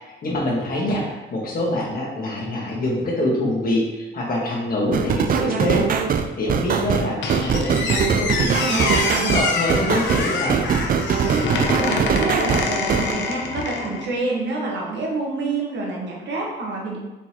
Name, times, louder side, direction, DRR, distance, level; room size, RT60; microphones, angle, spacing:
voice 1, 0.2-10.7, left 1 dB, 45° left, -3 dB, 1.6 m, -25 dB
sound 1, 4.9-13.1, right 6 dB, 45° right, 0.4 m, -21 dB
Squeak, 7.2-14.1, left 4 dB, 65° left, 0.7 m, -26 dB
voice 2, 11.3-17.0, right 3 dB, 65° right, -3 dB, 1.4 m, -27 dB
4.5 x 4.0 x 2.9 m, 1.1 s
cardioid pair, 90°, 20 cm